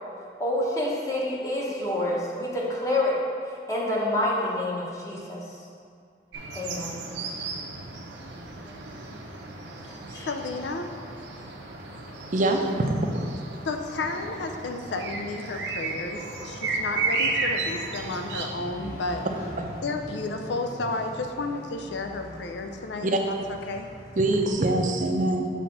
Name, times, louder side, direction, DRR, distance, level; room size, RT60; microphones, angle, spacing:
voice 1, 0.4-3.1 3.7-5.6 6.5-7.0 7.6-7.7 10.1-10.3, left 1 dB, 20° left, -5 dB, 1.0 m, -28 dB
sound 1, 6.3-18.5, right 3 dB, 85° right, 0.8 m, -33 dB
voice 2, 9.8-10.9 13.6-19.3 19.8-23.4 23.7-23.9, left 3 dB, 75° left, 5 dB, 0.5 m, -32 dB
Motorcycle, 12.1-24.5, equal, 50° left, 1.4 m, -44 dB
voice 3, 12.3-13.1 19.6-19.7 23.0-23.2 24.2-25.5, right 2 dB, 45° right, 3 dB, 0.6 m, -24 dB
5.8 x 3.6 x 6.0 m, 2.2 s
head